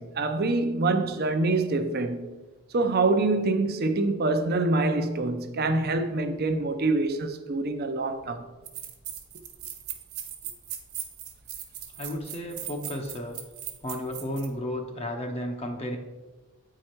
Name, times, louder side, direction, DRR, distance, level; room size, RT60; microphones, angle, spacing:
voice 1, 0.0-2.4 2.7-8.5, right 2 dB, 45° right, 0.6 m, -25 dB
sound 1, 8.1-8.2 8.6-14.5, right 11 dB, 85° right, 1.2 m, -38 dB
voice 2, 11.9-13.4 13.8-16.0, equal, 30° left, 0.7 m, -33 dB
8.7 x 4.8 x 4.4 m
head